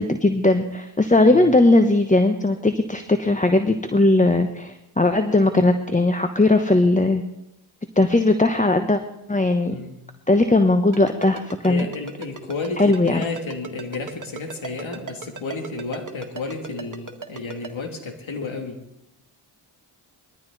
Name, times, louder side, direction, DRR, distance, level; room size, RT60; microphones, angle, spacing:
voice 1, 0.0-7.2 8.0-9.0 9.3-9.7 10.3-11.9 12.8-13.2, left 2 dB, 15° left, 8 dB, 1.1 m, -18 dB
Ringtone, 10.9-17.7, right 5 dB, 40° right, 2.0 m, -36 dB
voice 2, 11.6-18.8, left 3 dB, 70° left, 3 dB, 3.1 m, -32 dB
21.0 x 13.5 x 4.2 m, 0.85 s
cardioid pair, 50°, 49 cm